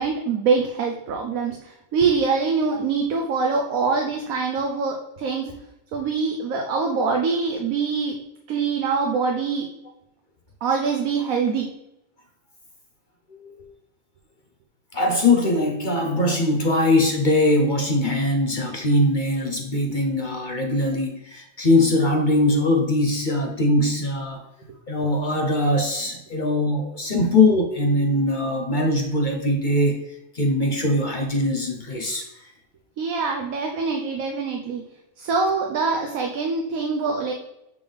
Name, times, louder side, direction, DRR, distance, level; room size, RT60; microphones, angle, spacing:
voice 1, 0.0-5.5 5.9-8.2 8.5-9.7 10.6-11.7 33.0-34.8 35.2-37.3, right 4 dB, 80° right, 2 dB, 1.2 m, -24 dB
voice 2, 14.9-24.4 24.9-30.0 30.3-32.3, left 1 dB, 45° left, 2 dB, 0.8 m, -21 dB
8.0 x 3.6 x 3.4 m, 0.86 s
omnidirectional pair, 1.4 m